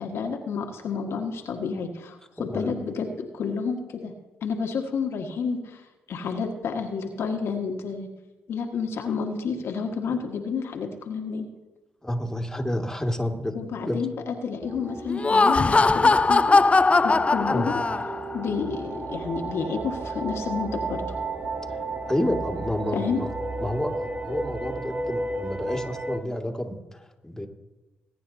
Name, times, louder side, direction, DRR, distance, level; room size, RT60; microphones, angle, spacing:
voice 1, 0.0-4.1 4.4-5.6 6.1-8.1 8.5-11.5 13.5-16.6 17.0-17.7 18.3-21.0 22.9-23.2, left 5 dB, 70° left, 2 dB, 1.6 m, -30 dB
voice 2, 2.4-2.7 12.0-13.6 13.8-14.0 17.5-17.7 22.1-23.3 23.6-27.5, left 1 dB, 10° left, 2 dB, 2.2 m, -29 dB
sound 1, 14.6-26.2, right 2 dB, 35° right, 1.4 m, -33 dB
Laughter, 15.1-18.3, left 3 dB, 25° left, 0.4 m, -20 dB
21.5 x 9.4 x 2.8 m, 1.1 s
hypercardioid pair, 45°, 5 cm